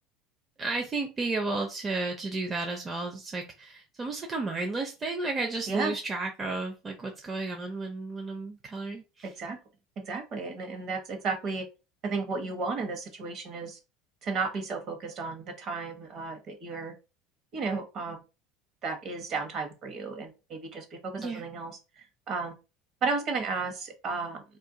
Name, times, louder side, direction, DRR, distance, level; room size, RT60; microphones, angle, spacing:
voice 1, 0.6-9.3 21.2-21.4, right 3 dB, 25° right, 2 dB, 0.6 m, -33 dB
voice 2, 9.2-9.6 10.0-11.7 12.0-13.8 14.2-16.9 17.5-18.2 18.8-22.6 23.0-24.4, right 4 dB, 45° right, 4 dB, 1.1 m, -33 dB
2.5 x 2.4 x 3.8 m, 0.29 s
supercardioid pair, 115°, 0 cm